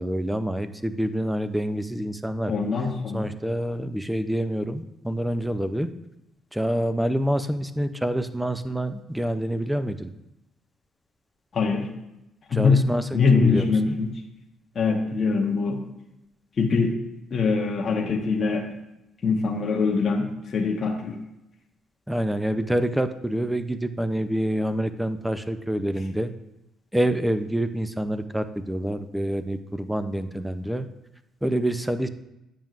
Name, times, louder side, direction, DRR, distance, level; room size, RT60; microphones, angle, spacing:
voice 1, 0.0-2.5 3.1-5.9 6.5-10.1 12.5-14.0 22.1-26.3 26.9-30.9 31.4-32.1, right 1 dB, 5° right, 10 dB, 0.4 m, -27 dB
voice 2, 2.5-3.3 11.5-11.9 12.5-12.9 13.1-14.1 14.7-15.8 16.6-16.9 17.3-18.7 19.2-21.1, left 4 dB, 35° left, 0 dB, 0.9 m, -23 dB
9.0 x 7.2 x 2.4 m, 0.91 s
cardioid pair, 130°, 0 cm